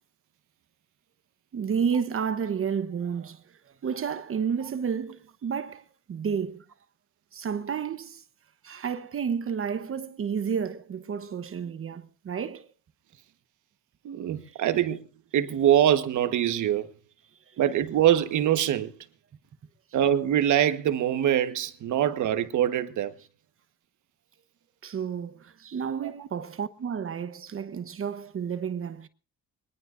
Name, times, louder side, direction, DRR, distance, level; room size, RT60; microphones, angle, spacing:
voice 1, 1.5-6.6 7.3-8.2 8.6-12.7 14.5-14.6 17.5-17.6 24.8-29.1, right 7 dB, 45° right, 1.0 m, -31 dB
voice 2, 14.0-15.0 15.3-16.9 17.6-18.9 19.9-23.1, right 11 dB, 75° right, 1.4 m, -24 dB
21.5 x 19.5 x 2.6 m
cardioid pair, 90°, 30 cm